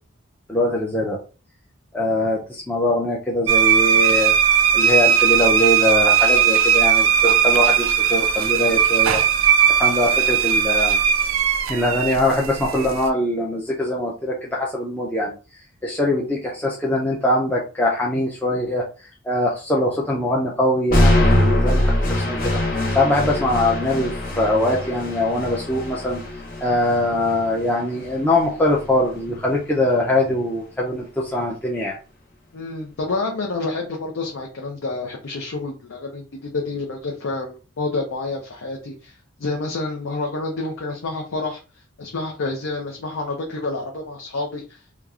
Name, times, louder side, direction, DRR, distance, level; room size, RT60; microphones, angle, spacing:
voice 1, 0.5-1.2 1.9-4.3 4.7-9.2 9.7-11.0 11.7-15.3 15.8-18.8 19.3-21.8 22.1-22.4 22.9-26.2 26.6-32.0, left 1 dB, 10° left, -4 dB, 0.4 m, -22 dB
sound 1, 3.5-13.1, right 8 dB, 70° right, 0.4 m, -18 dB
sound 2, 20.9-28.9, left 1 dB, 40° left, 0.8 m, -22 dB
voice 2, 32.5-44.8, left 3 dB, 70° left, 1 dB, 0.5 m, -29 dB
3.0 x 2.3 x 2.4 m, 0.33 s
head